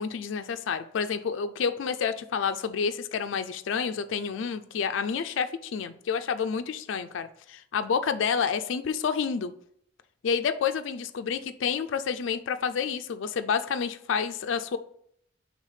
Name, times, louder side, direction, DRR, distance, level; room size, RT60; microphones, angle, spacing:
voice 1, 0.0-9.5 10.2-14.8, left 6 dB, 85° left, 10 dB, 0.4 m, -29 dB
4.9 x 3.4 x 5.6 m, 0.67 s
head